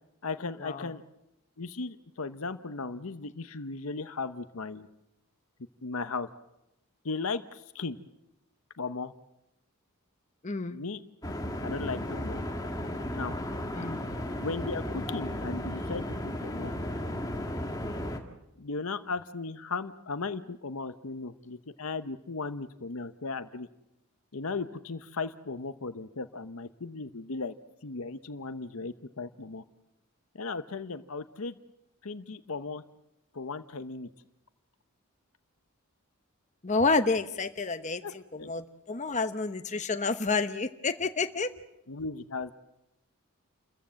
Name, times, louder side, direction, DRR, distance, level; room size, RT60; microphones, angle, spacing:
voice 1, 0.2-1.0 1.6-4.9 5.8-6.3 7.0-8.0 8.8-9.1 10.7-11.0 11.6-12.4 13.1-13.3 14.4-16.7 18.6-23.7 24.3-27.5 27.8-29.6 30.3-31.5 32.0-32.8 33.3-34.1 38.0-38.5 41.9-42.5, left 4 dB, 75° left, 11 dB, 0.9 m, -36 dB
voice 2, 10.4-10.8 13.7-14.0 36.6-38.0 38.3-41.5, left 3 dB, 30° left, 9 dB, 1.0 m, -29 dB
sound 1, 11.2-18.2, left 1 dB, 15° left, 1.8 m, -34 dB
29.0 x 14.5 x 7.6 m, 0.88 s
head